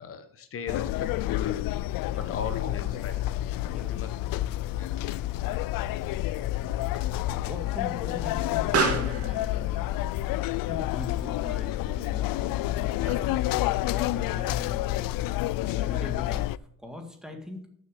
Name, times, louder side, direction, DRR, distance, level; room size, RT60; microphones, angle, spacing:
voice 1, 0.0-1.7 2.2-3.2 3.8-4.1 4.8-5.0, left 6 dB, 40° left, 10 dB, 1.4 m, -37 dB
sound 1, 0.7-16.6, left 15 dB, 85° left, 0.5 m, -29 dB
voice 2, 3.6-4.6 6.9-7.0 7.3-10.0 10.7-15.2 15.7-16.5 16.8-17.7, left 1 dB, ahead, 4 dB, 1.9 m, -42 dB
Explosion, 4.5-13.5, right 5 dB, 45° right, 2.6 m, -36 dB
12.0 x 7.0 x 6.5 m, 0.63 s
cardioid pair, 170°, 33 cm